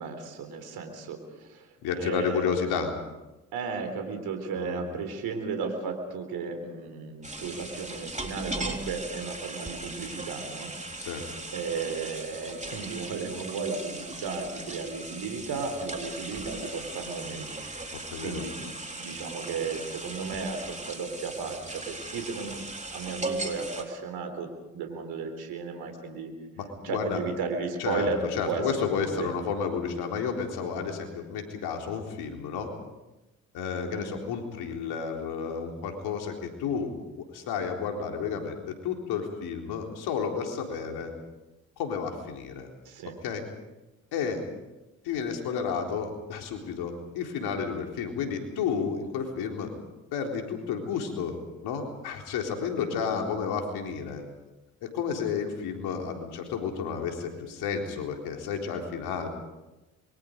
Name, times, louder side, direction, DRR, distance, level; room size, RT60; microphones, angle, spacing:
voice 1, 0.0-1.7 1.9-2.6 3.5-10.7 11.5-17.9 18.2-18.6 18.9-22.6 22.9-26.3 26.8-29.3 33.9-34.1 42.9-43.1 53.0-53.2, right 4 dB, 75° right, 5 dB, 3.8 m, -34 dB
voice 2, 1.8-3.0 4.6-4.8 11.0-11.2 18.1-18.5 26.6-27.2 27.8-32.7 33.5-41.1 41.8-42.7 43.2-43.4 44.1-44.4 45.0-49.7 50.1-54.2 54.8-59.3, left 6 dB, 80° left, 2 dB, 3.8 m, -31 dB
sound 1, 7.2-23.8, right 2 dB, 20° right, 3.9 m, -38 dB
27.0 x 23.5 x 5.2 m, 1.0 s
hypercardioid pair, 45°, 38 cm